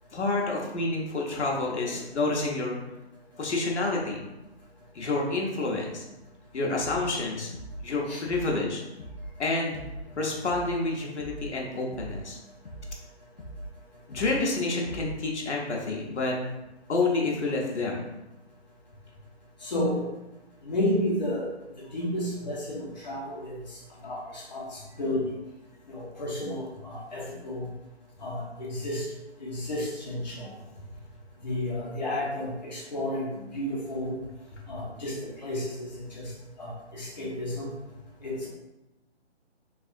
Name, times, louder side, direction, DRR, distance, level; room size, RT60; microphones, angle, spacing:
voice 1, 0.1-2.8 3.4-4.2 4.9-6.0 6.5-7.5 7.8-8.8 9.4-9.8 10.1-12.4 14.1-16.4 16.9-18.1, left 3 dB, 80° left, -1 dB, 1.0 m, -28 dB
sound 1, 6.8-7.2 7.5-7.9 8.3-8.6 9.0-9.4 9.7-10.1 10.5-10.8 11.2-11.6 11.9-12.3 12.6-13.0 13.4-13.8 14.1-14.5 14.8-15.3, right 1 dB, 60° left, 0.6 m, -40 dB
voice 2, 19.6-20.1 20.6-21.5 21.8-25.3 25.9-27.7 28.2-29.1 29.4-30.5 31.4-34.2 34.7-36.3 36.6-37.7 38.2-38.5, left 1 dB, 40° left, -5 dB, 1.1 m, -32 dB
3.4 x 3.3 x 2.5 m, 0.95 s
hypercardioid pair, 175°, 34 cm